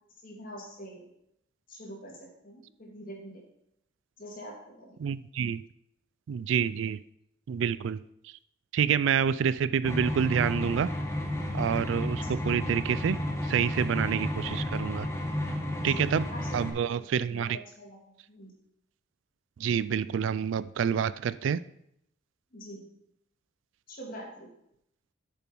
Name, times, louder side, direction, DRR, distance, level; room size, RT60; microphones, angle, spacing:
voice 1, 0.2-1.0 1.7-3.4 4.2-5.0 12.2-12.4 15.8-16.0 16.3-18.0 18.3-18.5 22.5-22.9 23.9-24.5, equal, 45° left, -1 dB, 2.4 m, -45 dB
voice 2, 5.0-5.6 6.3-7.0 7.5-8.0 8.2-8.3 8.7-10.9 11.5-13.2 13.4-15.1 15.8-16.3 16.5-17.6 19.6-21.6, right 7 dB, 75° right, 16 dB, 0.3 m, -28 dB
sound 1, 9.8-16.7, left 1 dB, 15° left, 1.1 m, -32 dB
8.0 x 6.9 x 4.6 m, 0.75 s
head